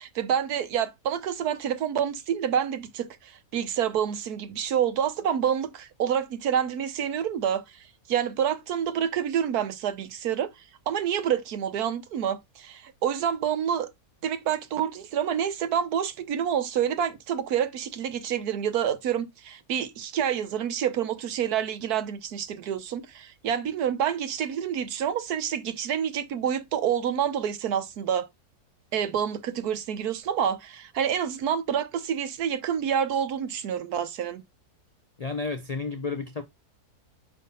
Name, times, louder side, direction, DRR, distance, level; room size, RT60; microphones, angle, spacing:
voice 1, 0.0-7.8 8.1-10.5 10.9-13.9 14.2-28.3 28.9-34.4, right 9 dB, 75° right, 1.4 m, -28 dB
voice 2, 35.2-36.4, left 4 dB, 60° left, 0.4 m, -31 dB
5.7 x 3.2 x 5.4 m
omnidirectional pair, 1.7 m